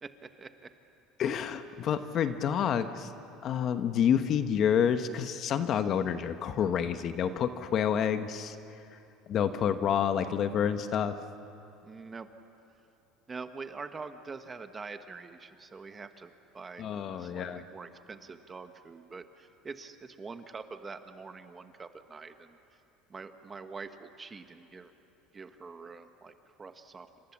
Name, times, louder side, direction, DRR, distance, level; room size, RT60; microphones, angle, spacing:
voice 1, 0.0-0.7 9.5-9.9 11.8-12.3 13.3-16.9 17.2-22.6 23.1-24.9 25.3-26.3 26.6-27.1, right 4 dB, 20° right, 8 dB, 1.2 m, -45 dB
voice 2, 1.2-3.1 3.4-8.6 9.3-11.2 16.8-17.6, left 8 dB, 45° left, 9 dB, 1.1 m, -28 dB
28.5 x 26.0 x 7.3 m, 2.8 s
cardioid pair, 135°, 0 cm